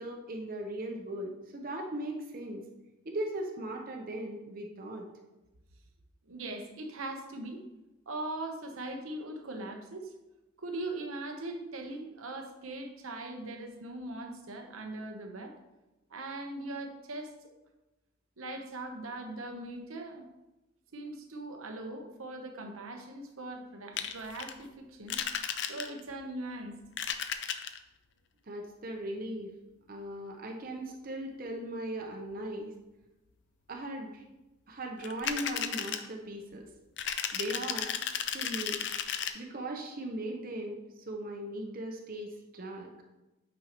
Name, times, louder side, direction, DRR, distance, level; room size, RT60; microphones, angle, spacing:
voice 1, 0.0-2.6 3.0-5.1 28.5-29.5 29.9-32.7 33.7-34.2 34.7-36.7 37.3-37.9 38.3-38.8 39.3-42.9, right 1 dB, 45° right, 1 dB, 0.7 m, -38 dB
voice 2, 6.3-7.6 8.1-10.1 10.6-15.6 16.1-17.3 18.4-20.2 20.9-25.2 25.7-26.8, right 2 dB, 85° right, 4 dB, 1.0 m, -40 dB
sound 1, 24.0-24.5 25.1-26.1 26.8-27.8 35.0-36.1 37.0-39.3, left 8 dB, 55° left, 0.5 m, -34 dB
8.6 x 5.4 x 3.0 m, 1.0 s
head